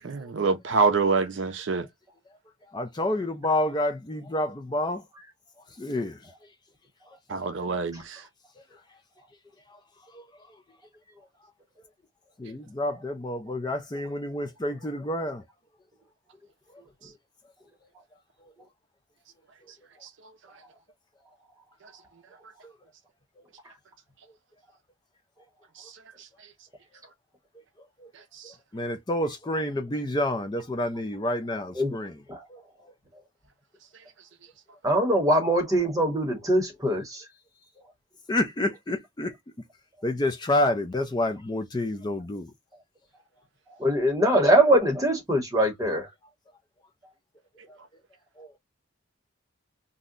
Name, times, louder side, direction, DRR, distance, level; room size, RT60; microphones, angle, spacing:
voice 1, 0.0-1.9 7.3-8.2, right 4 dB, 60° right, 0.5 m, -25 dB
voice 2, 2.7-5.1 5.8-6.3 8.6-8.7 9.7-9.8 10.1-10.6 12.4-15.4 16.7-16.8 18.4-18.5 22.6-22.7 28.0-28.1 28.4-32.2 32.5-32.6 38.3-39.3 40.0-42.5 47.7-47.8 48.4-48.5, left 1 dB, 20° left, 0.4 m, -29 dB
voice 3, 34.8-37.2 43.8-46.1, right 1 dB, 15° right, 0.9 m, -22 dB
2.7 x 2.1 x 3.7 m
head